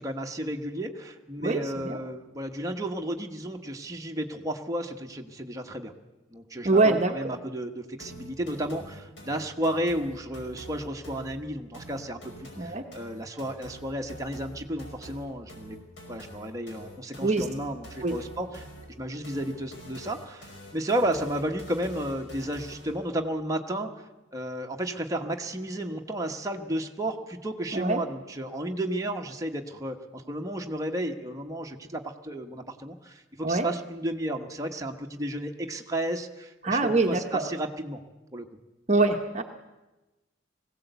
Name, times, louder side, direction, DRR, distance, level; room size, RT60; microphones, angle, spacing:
voice 1, 0.0-5.9 6.3-15.8 16.1-18.7 19.0-23.9 24.3-38.0 38.3-38.5, right 1 dB, 15° right, 2 dB, 1.2 m, -33 dB
voice 2, 1.4-2.0 6.6-7.4 12.6-12.8 17.2-17.4 18.0-18.1 27.7-28.0 33.4-33.7 36.6-37.4 38.9-39.4, right 3 dB, 35° right, 4 dB, 1.0 m, -24 dB
sound 1, 8.0-23.0, right 1 dB, 65° left, 5.3 m, -46 dB
20.5 x 16.5 x 8.1 m, 1.1 s
head